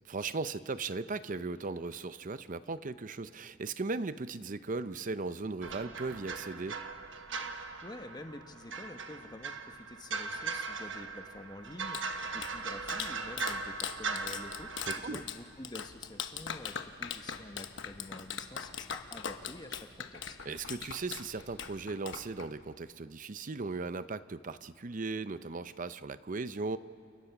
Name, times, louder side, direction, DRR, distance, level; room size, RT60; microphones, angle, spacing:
voice 1, 0.1-6.8 14.9-15.2 20.4-26.8, right 3 dB, 45° right, 13 dB, 0.6 m, -37 dB
sound 1, 5.6-15.0, right 4 dB, 70° right, 1.3 m, -39 dB
voice 2, 7.8-20.4, left 1 dB, 20° left, 6 dB, 1.3 m, -48 dB
Clapping, 11.6-22.8, left 7 dB, 70° left, 1.2 m, -42 dB
29.0 x 21.0 x 6.0 m, 2.6 s
head